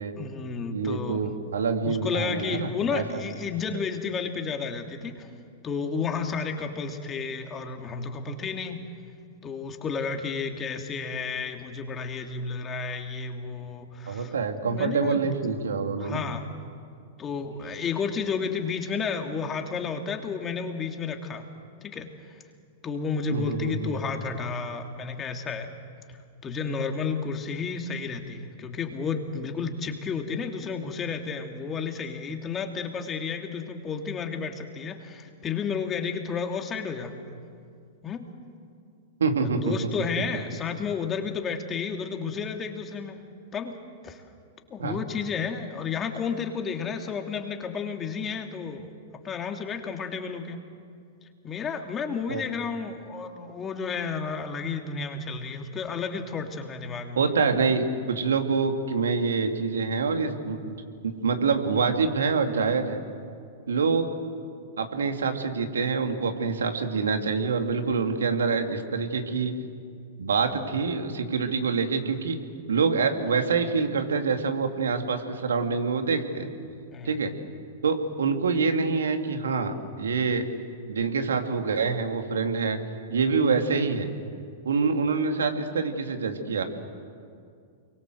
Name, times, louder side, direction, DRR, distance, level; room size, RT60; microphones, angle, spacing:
voice 1, 0.2-1.3 1.8-5.3 5.6-8.8 9.4-14.3 14.7-15.3 16.0-16.4 17.2-21.4 21.8-22.1 22.8-25.7 26.4-37.1 38.0-38.3 39.6-43.2 43.5-43.8 44.0-44.2 44.7-50.6 51.4-57.2 76.9-77.2, left 5 dB, 25° left, 4 dB, 3.1 m, -32 dB
voice 2, 0.7-3.0 14.1-16.2 23.3-24.0 39.2-39.7 44.8-45.0 52.3-52.4 57.1-60.8 61.0-63.0 63.7-64.1 64.8-69.6 70.2-72.4 72.7-76.5 77.0-77.3 77.8-80.5 80.9-82.8 83.1-84.1 84.6-86.6, right 5 dB, 75° right, 5 dB, 2.7 m, -26 dB
29.5 x 23.0 x 8.0 m, 2.3 s
hypercardioid pair, 105°, 0 cm